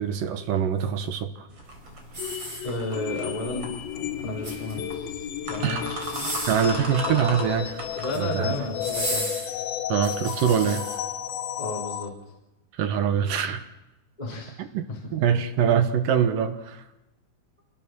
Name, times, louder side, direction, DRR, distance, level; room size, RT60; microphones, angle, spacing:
voice 1, 0.0-1.5 5.6-5.8 6.5-7.8 8.2-8.5 9.9-10.9 12.8-13.7 14.6-16.8, right 8 dB, 70° right, 8 dB, 2.8 m, -24 dB
sound 1, 1.5-9.0, equal, 40° right, 4.7 m, -38 dB
sound 2, 2.1-3.1 4.2-5.0 5.9-6.8 7.8-8.3 8.8-11.0 11.6-11.7, right 1 dB, 15° right, 7.0 m, -34 dB
sound 3, 2.2-12.1, left 10 dB, 80° left, 2.9 m, -33 dB
voice 2, 2.6-3.7 4.2-6.0 6.6-7.2 7.9-9.3 11.6-12.1 14.2-14.6 14.9-15.0, left 2 dB, 10° left, -4 dB, 3.3 m, -33 dB
27.0 x 21.0 x 6.3 m, 0.99 s
omnidirectional pair, 4.2 m